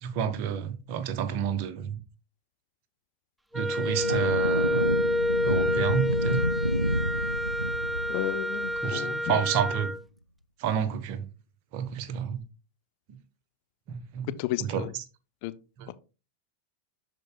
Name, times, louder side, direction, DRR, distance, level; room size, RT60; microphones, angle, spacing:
voice 1, 0.0-2.0 3.5-4.8 5.4-6.5 8.8-9.9 10.6-11.2 11.7-12.4 13.9-14.3 14.6-14.8 15.8-15.9, right 8 dB, 45° right, 0.9 m, -30 dB
Wind instrument woodwind instrument, 3.5-10.0, left 1 dB, 5° right, 0.4 m, -29 dB
sound 1, 3.9-9.5, equal, 90° right, 0.4 m, -29 dB
voice 2, 8.1-9.4 14.4-14.9 15.4-15.5 15.9-16.0, left 15 dB, 45° left, 0.6 m, -33 dB
12.0 x 4.6 x 2.2 m
figure-of-eight pair, 90°, 0 cm